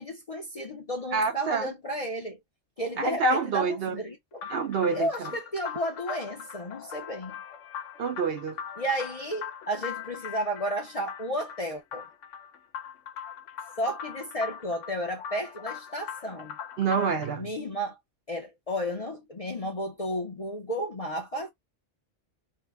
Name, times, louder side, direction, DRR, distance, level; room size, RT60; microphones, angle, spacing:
voice 1, 0.0-2.4 2.8-4.5 4.9-7.4 8.8-12.0 13.8-16.6 17.4-18.0 18.3-21.5, equal, 40° left, 0.5 m, -33 dB
voice 2, 1.1-1.7 3.0-4.0 4.5-5.3 8.0-8.6 16.8-17.5, right 4 dB, 60° right, 0.7 m, -27 dB
sound 1, 4.4-17.3, left 8 dB, 75° left, 0.9 m, -41 dB
2.7 x 2.1 x 3.3 m
omnidirectional pair, 1.3 m